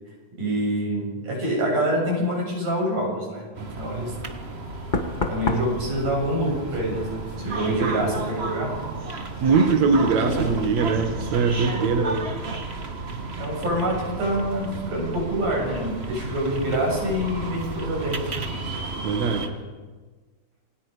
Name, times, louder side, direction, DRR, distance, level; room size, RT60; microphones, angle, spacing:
voice 1, 0.4-4.1 5.3-8.7 11.8-12.2 13.4-18.4, equal, 90° right, -1 dB, 9.2 m, -26 dB
sound 1, 3.5-19.5, right 3 dB, 45° right, 0.7 m, -33 dB
Knock, 3.9-4.1 4.9-8.4 8.7-9.1, left 2 dB, 85° left, 0.4 m, -32 dB
voice 2, 7.8-8.1 9.4-12.1 19.0-19.5, right 4 dB, 65° right, 4 dB, 2.7 m, -22 dB
27.5 x 21.5 x 5.1 m, 1.4 s
omnidirectional pair, 3.6 m